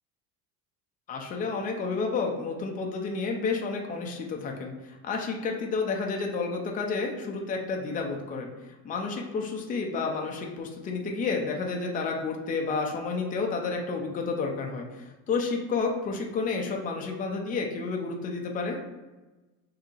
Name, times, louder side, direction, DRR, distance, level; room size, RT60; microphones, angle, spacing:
voice 1, 1.1-8.5 8.8-18.8, left 4 dB, 25° left, 1 dB, 0.4 m, -30 dB
5.2 x 2.8 x 2.4 m, 1.1 s
cardioid pair, 155°, 37 cm